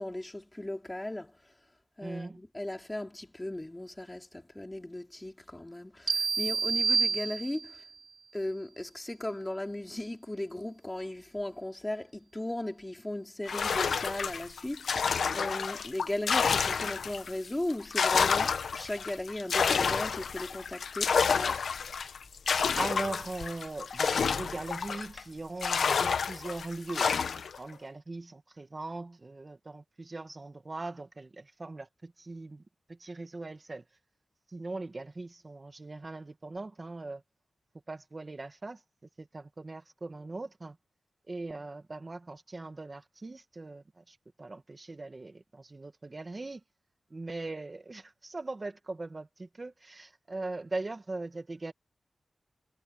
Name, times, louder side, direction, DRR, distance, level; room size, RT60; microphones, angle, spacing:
voice 1, 0.0-1.3 2.0-7.8 8.3-21.7, left 1 dB, 15° left, 4.0 m, -37 dB
voice 2, 2.0-2.4 22.8-27.2 27.6-32.6 32.9-33.8 34.5-37.2 37.9-38.8 39.2-40.8 41.3-46.6 47.1-51.7, right 2 dB, 35° right, 2.0 m, -40 dB
sound 1, 6.1-7.9, right 5 dB, 65° right, 0.5 m, -28 dB
sound 2, 13.5-17.3 17.7-25.2 25.6-27.6, left 6 dB, 85° left, 1.1 m, -29 dB
wide cardioid pair, 100°, 0 cm